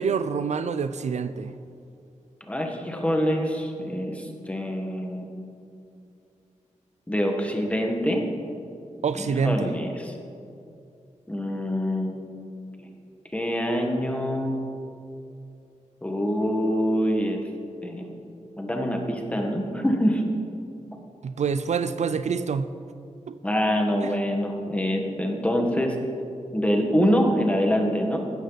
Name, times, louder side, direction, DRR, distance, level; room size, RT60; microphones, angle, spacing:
voice 1, 0.0-1.5 9.0-9.7 21.2-22.7 23.3-23.4 24.0-24.1, right 5 dB, 65° right, 12 dB, 0.4 m, -26 dB
voice 2, 2.5-5.3 7.1-8.3 9.1-10.1 11.3-12.2 12.8-12.9 13.3-14.6 16.0-17.4 17.8-18.0 18.6-20.2 23.4-26.0 26.5-28.2, equal, 10° left, 2 dB, 1.5 m, -25 dB
16.0 x 13.0 x 4.1 m, 2.6 s
wide cardioid pair, 165°, 13 cm